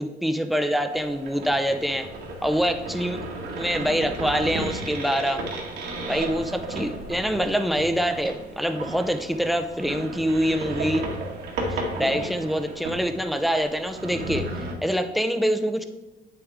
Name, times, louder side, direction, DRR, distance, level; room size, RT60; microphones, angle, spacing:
voice 1, 0.0-2.1 2.4-3.2 3.6-5.4 6.1-11.0 11.7-14.4 14.8-15.8, equal, ahead, 8 dB, 0.7 m, -25 dB
sound 1, 0.9-14.7, right 1 dB, 75° right, 1.8 m, -34 dB
8.4 x 7.1 x 3.5 m, 1.2 s
cardioid pair, 110°, 17 cm